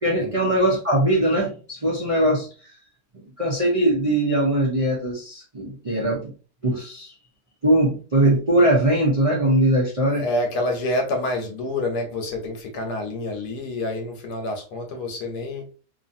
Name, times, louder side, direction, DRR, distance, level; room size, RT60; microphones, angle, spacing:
voice 1, 0.0-2.8 3.4-6.3 6.6-7.1 7.6-10.2, right 1 dB, 60° right, -5 dB, 0.3 m, -21 dB
voice 2, 10.1-15.7, left 1 dB, 85° left, 3 dB, 1.4 m, -27 dB
2.9 x 2.5 x 2.5 m, 0.37 s
omnidirectional pair, 1.7 m